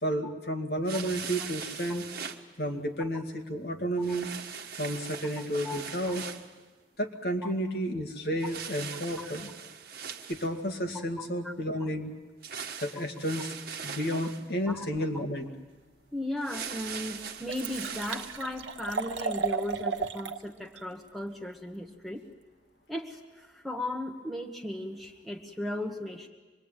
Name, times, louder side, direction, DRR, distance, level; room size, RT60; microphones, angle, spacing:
voice 1, 0.0-2.1 2.6-4.3 4.8-6.3 7.0-9.5 10.3-12.1 12.8-13.5 13.8-15.5, equal, 55° left, 4 dB, 2.2 m, -31 dB
sound 1, 0.8-2.4 4.0-6.5 8.4-10.7 12.4-14.5 16.4-18.4, right 6 dB, 55° right, 1.5 m, -40 dB
voice 2, 16.1-22.2 22.9-26.3, left 1 dB, ahead, 1 dB, 1.4 m, -36 dB
Liquid, 16.3-16.4 16.9-17.0 17.2-20.4 20.8-20.9, right 5 dB, 85° right, 1.1 m, -34 dB
25.5 x 21.5 x 9.1 m, 1.3 s
head